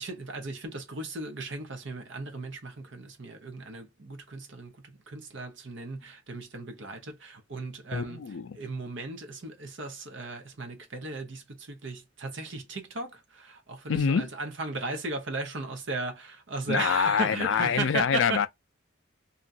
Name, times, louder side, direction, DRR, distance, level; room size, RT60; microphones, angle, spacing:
voice 1, 0.0-8.2 8.5-18.5, right 3 dB, 60° right, 0.9 m, -36 dB
voice 2, 7.9-8.6 13.9-14.3 16.7-18.5, left 6 dB, 65° left, 0.4 m, -26 dB
2.9 x 2.4 x 2.5 m
head